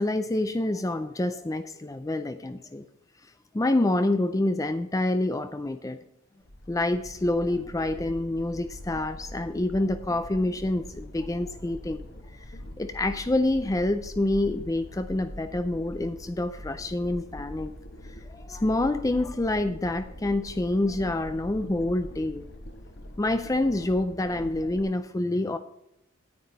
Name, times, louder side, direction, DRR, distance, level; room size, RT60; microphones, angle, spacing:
voice 1, 0.0-2.9 3.2-6.0 6.7-12.4 12.8-17.7 18.0-22.4 23.2-25.6, left 2 dB, 15° left, 10 dB, 0.4 m, -27 dB
sound 1, 6.4-24.8, left 1 dB, 50° left, 1.3 m, -43 dB
9.5 x 9.3 x 4.0 m, 0.83 s
head